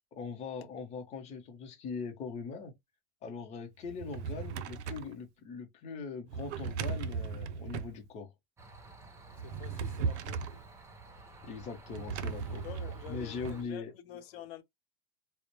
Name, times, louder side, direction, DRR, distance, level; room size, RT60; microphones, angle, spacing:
voice 1, 0.1-2.7 3.2-8.3 11.4-12.7 13.1-13.9, left 5 dB, 20° left, 0.7 m, -41 dB
Drawer open or close, 3.8-5.2 6.3-8.0 9.3-10.6 11.9-13.6, right 6 dB, 85° right, 0.5 m, -37 dB
sound 1, 8.6-13.6, right 3 dB, 10° right, 0.4 m, -52 dB
voice 2, 9.4-10.4 12.6-14.6, left 11 dB, 65° left, 0.8 m, -48 dB
2.0 x 2.0 x 3.0 m
supercardioid pair, 135°, 33 cm